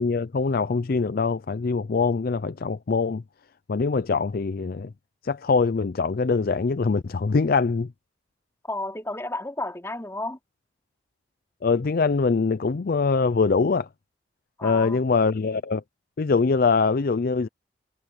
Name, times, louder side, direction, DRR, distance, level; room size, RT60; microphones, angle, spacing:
voice 1, 0.0-3.2 3.7-4.9 5.2-7.9 11.6-13.9 14.6-15.8 16.2-17.5, left 4 dB, 55° left, 0.5 m, -23 dB
voice 2, 8.7-10.4 14.6-15.0, left 2 dB, 15° left, 4.2 m, -32 dB
head